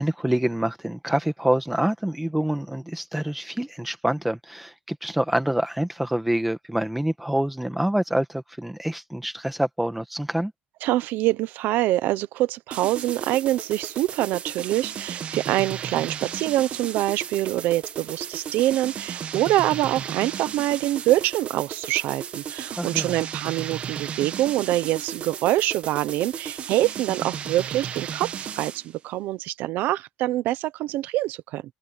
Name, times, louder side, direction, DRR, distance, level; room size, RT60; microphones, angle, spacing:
voice 1, 0.0-10.5 22.8-23.2, right 1 dB, 5° right, 1.5 m, -26 dB
voice 2, 10.8-31.6, right 15 dB, 75° right, 0.9 m, -25 dB
sound 1, 12.7-28.9, right 8 dB, 40° right, 1.4 m, -34 dB
cardioid pair, 160°, 3 cm